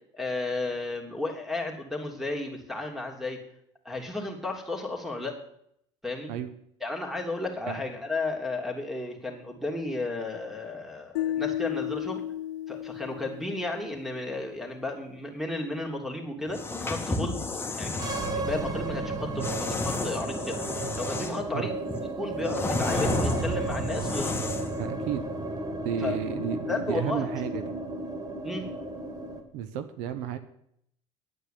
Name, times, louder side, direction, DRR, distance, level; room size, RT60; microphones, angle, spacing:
voice 1, 0.1-3.4 3.8-5.4 6.0-6.3 6.8-12.2 12.7-17.4 17.8-24.5 26.0-26.2 26.7-27.3 28.4-28.7, left 2 dB, ahead, 3 dB, 3.2 m, -33 dB
sound 1, 11.2-14.3, left 12 dB, 85° left, 0.4 m, -33 dB
sound 2, 16.5-18.3 19.4-21.5 21.9-24.8, left 3 dB, 15° left, 1.9 m, -32 dB
sound 3, 17.9-29.4, right 2 dB, 25° right, 2.1 m, -33 dB
voice 2, 24.8-25.2 25.8-27.8 29.5-30.4, right 9 dB, 70° right, 11 dB, 1.0 m, -32 dB
9.9 x 8.9 x 8.5 m, 0.73 s
supercardioid pair, 90°, 15 cm